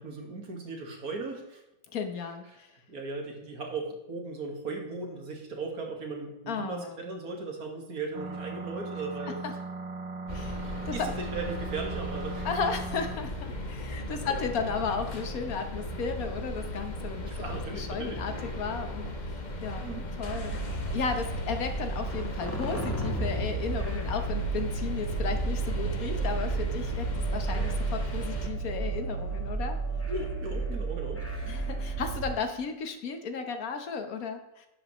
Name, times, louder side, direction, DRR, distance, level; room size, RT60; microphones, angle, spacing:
voice 1, 0.0-1.6 2.9-9.4 10.6-12.5 13.9-14.4 17.2-18.2 19.8-20.1 27.5-27.7 30.1-31.5, right 3 dB, 80° right, 1 dB, 2.2 m, -37 dB
voice 2, 1.9-2.7 6.5-7.0 9.2-9.5 10.3-11.1 12.4-19.9 20.2-29.8 30.7-30.8 31.4-34.7, left 5 dB, 75° left, 7 dB, 1.5 m, -34 dB
sound 1, 8.1-13.2, right 3 dB, 40° right, 0.6 m, -38 dB
sound 2, 10.3-28.5, left 1 dB, 35° left, 1.1 m, -37 dB
sound 3, 20.2-32.3, right 4 dB, 10° left, 1.5 m, -32 dB
11.0 x 8.0 x 3.1 m, 0.96 s
omnidirectional pair, 1.5 m